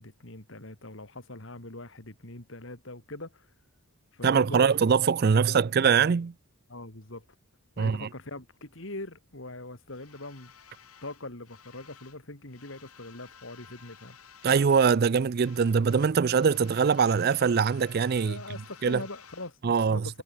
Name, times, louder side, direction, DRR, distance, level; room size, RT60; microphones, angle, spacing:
voice 1, 0.0-3.5 4.1-4.7 5.3-5.6 6.7-7.2 7.8-10.5 11.0-14.2 18.2-20.2, left 2 dB, 60° left, 3.1 m, -42 dB
voice 2, 4.2-6.3 7.8-8.1 14.4-18.4 18.8-19.0 19.6-20.2, right 6 dB, 45° right, 0.4 m, -23 dB
sound 1, 9.9-12.2 12.5-15.1 15.3-19.6, left 7 dB, 90° left, 5.8 m, -53 dB
head